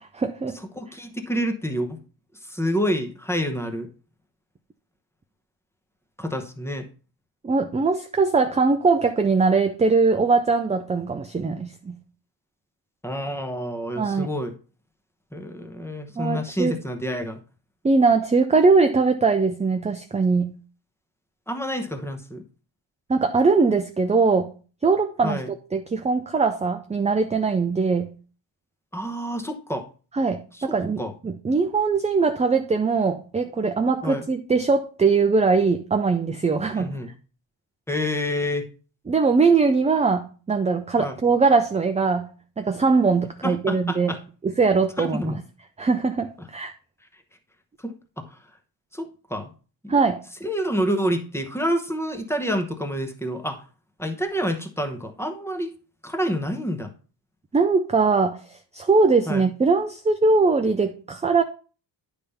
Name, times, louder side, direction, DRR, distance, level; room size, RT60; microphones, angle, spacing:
voice 1, 0.0-0.6 7.4-12.0 14.0-14.3 16.2-16.7 17.8-20.5 23.1-24.5 24.8-25.4 25.7-28.1 30.1-36.9 39.1-42.3 42.6-44.1 44.4-45.4 45.8-46.7 49.9-50.2 57.5-61.4, right 4 dB, 15° right, 0.3 m, -21 dB
voice 2, 0.7-2.0 2.4-3.9 6.2-6.9 13.0-14.6 15.3-17.4 21.5-22.4 25.2-25.5 28.9-29.9 30.5-31.1 34.0-34.2 36.7-37.1 37.9-38.7 41.0-41.2 43.4-44.2 45.0-45.4 47.8-48.4 48.9-49.5 49.8-49.9 50.4-53.6 54.0-55.7 56.0-56.9 59.3-59.5, equal, 5° left, 0.9 m, -28 dB
10.0 x 3.5 x 5.5 m
wide cardioid pair, 160°, 46 cm